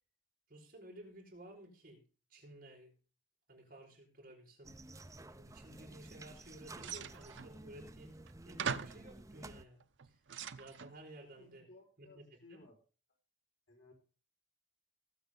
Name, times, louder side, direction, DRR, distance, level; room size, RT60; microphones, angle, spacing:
voice 1, 0.5-2.0 2.3-2.9 3.5-4.7 5.4-8.1 8.4-10.2 10.6-11.7 12.1-12.2 12.5-12.6, right 1 dB, 45° right, -1 dB, 5.1 m, -54 dB
sound 1, 4.6-9.7, right 2 dB, 15° right, 0.5 m, -53 dB
sound 2, 6.8-7.5 8.3-8.4 8.6-9.1 9.8-11.0, right 7 dB, 75° right, 0.6 m, -41 dB
voice 2, 11.3-12.7 13.7-13.9, left 2 dB, 75° left, 1 dB, 5.1 m, -59 dB
18.5 x 8.0 x 3.8 m, 0.36 s
head